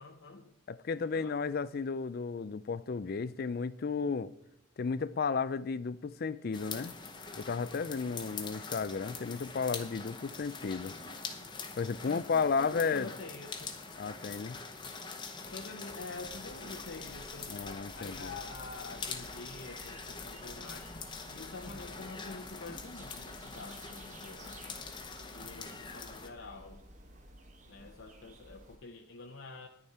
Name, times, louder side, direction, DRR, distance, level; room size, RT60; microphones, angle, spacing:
voice 1, 0.0-0.6 1.0-1.4 12.0-13.8 15.5-17.6 17.9-24.6 25.3-26.8 27.7-29.7, left 3 dB, 60° left, 0.8 m, -47 dB
voice 2, 0.7-4.3 4.8-6.9 7.4-11.0 11.8-13.1 14.0-14.6 17.5-18.3, left 5 dB, 45° left, 0.4 m, -33 dB
sound 1, 6.5-26.3, left 4 dB, 20° left, 0.9 m, -44 dB
sound 2, 16.2-28.8, right 1 dB, 35° right, 1.1 m, -54 dB
10.5 x 9.9 x 4.3 m
head